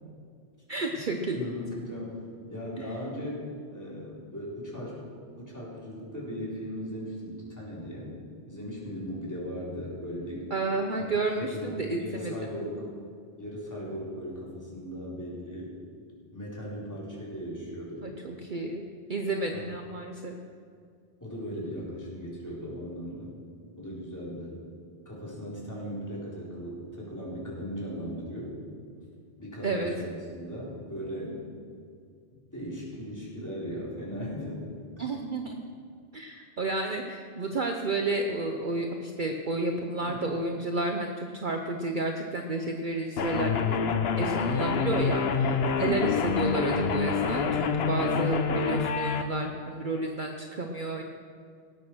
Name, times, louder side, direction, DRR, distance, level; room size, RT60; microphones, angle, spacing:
voice 1, 0.7-1.4 2.8-2.9 10.5-12.3 18.0-20.4 29.6-29.9 35.0-35.6 36.1-43.6 44.2-51.0, right 2 dB, 45° right, 3 dB, 0.9 m, -31 dB
voice 2, 1.3-2.1 2.5-5.1 5.4-8.2 8.5-10.5 11.0-11.1 11.4-12.8 13.4-15.7 16.3-18.1 19.5-19.6 21.2-23.4 23.8-24.6 25.0-28.6 29.4-31.4 32.3-34.6 35.0-35.1 40.0-40.2 45.8-46.1, equal, 15° left, -6 dB, 4.1 m, -38 dB
sound 1, 43.2-49.2, left 5 dB, 60° left, 1.0 m, -27 dB
18.0 x 8.5 x 6.2 m, 2.2 s
omnidirectional pair, 1.2 m